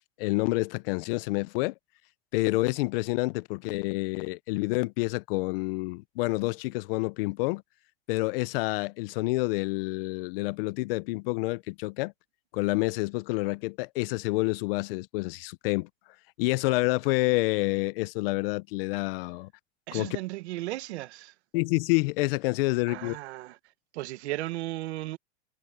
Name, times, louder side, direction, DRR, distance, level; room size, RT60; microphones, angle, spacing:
voice 1, 0.2-1.7 2.3-7.6 8.1-12.1 12.5-15.9 16.4-19.5 19.9-20.2 21.5-23.2, left 23 dB, 60° left, 0.6 m, -28 dB
voice 2, 19.9-21.3 22.9-23.6 23.9-25.2, right 17 dB, 85° right, 1.4 m, -35 dB
supercardioid pair, 155°, 33 cm